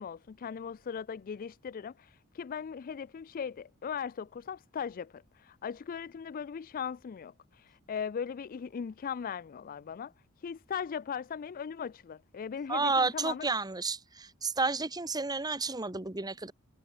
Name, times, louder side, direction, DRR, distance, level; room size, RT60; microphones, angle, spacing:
voice 1, 0.0-10.1 10.4-13.5, left 7 dB, 40° left, 0.3 m, -39 dB
voice 2, 12.7-16.5, right 3 dB, 15° right, 1.3 m, -31 dB
head